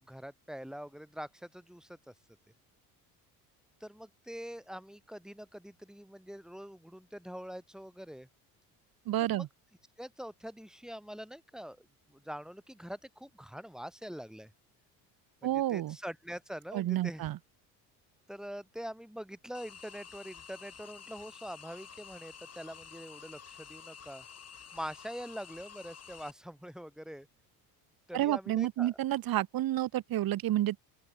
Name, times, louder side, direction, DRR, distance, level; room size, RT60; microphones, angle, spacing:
voice 1, 0.1-2.1 3.8-8.3 9.2-9.5 10.0-14.5 15.4-17.3 18.3-24.2 24.7-27.3 28.1-28.9, equal, ahead, 4.9 m, -44 dB
voice 2, 9.1-9.5 15.4-16.0 16.7-17.4 28.1-30.8, right 14 dB, 55° right, 2.1 m, -30 dB
sound 1, 19.5-26.3, left 7 dB, 35° left, 4.7 m, -50 dB
open air
supercardioid pair, 85°, 42 cm